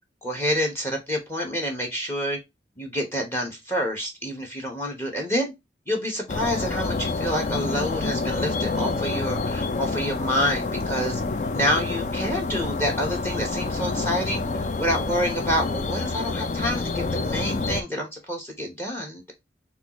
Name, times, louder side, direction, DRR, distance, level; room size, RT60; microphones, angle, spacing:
voice 1, 0.2-2.4 2.8-5.5 5.9-11.2 11.5-19.3, equal, 15° left, 1.1 m, -28 dB
sound 1, 6.3-17.8, left 3 dB, 45° left, 0.4 m, -28 dB
6.5 x 2.4 x 3.0 m
head